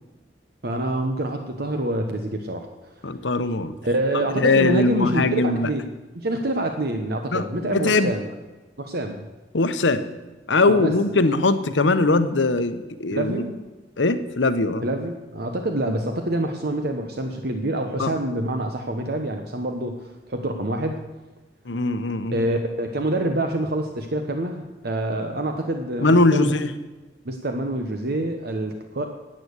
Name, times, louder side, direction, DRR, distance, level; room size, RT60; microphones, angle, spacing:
voice 1, 0.6-2.9 3.8-5.9 6.1-8.3 8.8-9.3 10.6-10.9 13.1-13.5 14.8-21.0 22.3-26.5 27.2-29.0, right 1 dB, 60° right, 5 dB, 1.0 m, -26 dB
voice 2, 3.0-3.7 4.1-5.7 7.3-8.1 9.5-10.1 10.5-13.4 14.0-14.8 18.0-18.1 21.7-22.4 26.0-26.7, left 2 dB, 80° left, 11 dB, 0.9 m, -21 dB
12.0 x 8.6 x 8.2 m, 1.1 s
head